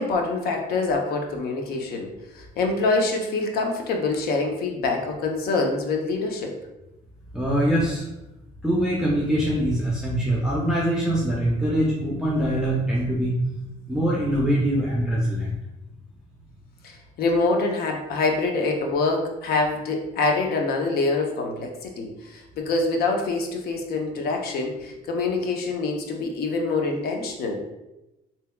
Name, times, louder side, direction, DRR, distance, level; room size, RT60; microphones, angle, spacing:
voice 1, 0.0-2.1 2.3-6.5 16.8-27.6, left 3 dB, 65° left, 2 dB, 0.6 m, -25 dB
voice 2, 7.3-8.0 8.6-13.3 13.9-15.5, right 1 dB, 5° right, -5 dB, 0.5 m, -23 dB
3.4 x 2.8 x 2.2 m, 0.96 s
cardioid pair, 110°, 17 cm